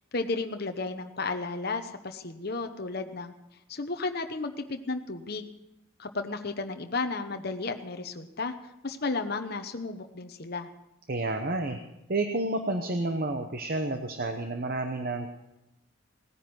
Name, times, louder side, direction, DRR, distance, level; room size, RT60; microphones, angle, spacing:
voice 1, 0.1-3.3 3.7-5.4 6.0-10.7, left 3 dB, 45° left, 6 dB, 0.9 m, -33 dB
voice 2, 11.1-11.8 12.1-15.3, right 2 dB, 45° right, 6 dB, 0.9 m, -30 dB
18.0 x 10.0 x 6.1 m, 0.92 s
head